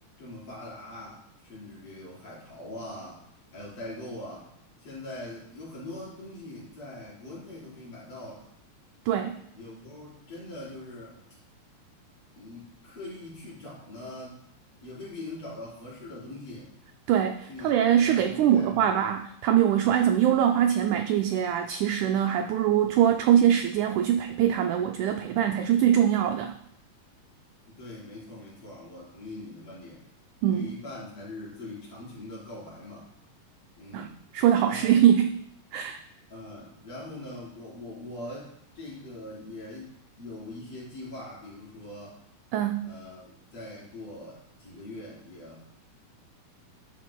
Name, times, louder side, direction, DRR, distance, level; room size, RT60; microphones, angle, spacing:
voice 1, 0.2-3.2 3.5-4.5 4.8-8.5 9.5-11.2 12.4-14.5 14.8-16.7 17.5-19.2 19.8-20.0 27.7-30.0 30.5-33.1 33.8-34.1 34.7-34.9 36.3-42.2 42.8-45.6, left 1 dB, 45° left, -7 dB, 4.8 m, -42 dB
voice 2, 9.1-9.4 17.1-26.6 30.4-30.7 33.9-34.1 34.3-35.4 35.7-36.0 42.5-42.9, right 10 dB, 85° right, 5 dB, 1.7 m, -23 dB
12.0 x 9.2 x 2.2 m, 0.74 s
omnidirectional pair, 4.0 m